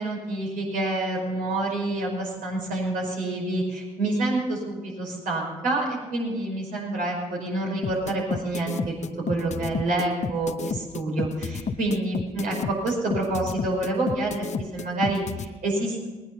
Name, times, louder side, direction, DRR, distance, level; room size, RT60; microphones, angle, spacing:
voice 1, 0.0-8.9 9.3-16.1, right 2 dB, 70° right, -2 dB, 5.2 m, -28 dB
sound 1, 7.8-15.5, left 5 dB, 55° left, 0.9 m, -30 dB
19.5 x 10.0 x 5.6 m, 1.3 s
hypercardioid pair, 45°, 15 cm